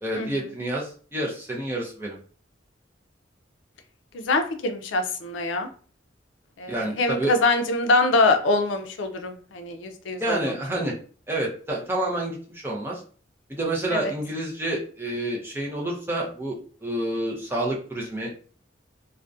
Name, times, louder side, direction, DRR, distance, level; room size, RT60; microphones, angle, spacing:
voice 1, 0.0-2.2 6.7-7.3 10.2-10.9 11.3-13.0 13.5-18.3, right 1 dB, 10° right, -3 dB, 0.5 m, -29 dB
voice 2, 4.1-5.7 6.6-10.4 13.9-14.1, left 2 dB, 85° left, 7 dB, 0.4 m, -24 dB
2.3 x 2.1 x 2.5 m, 0.42 s
head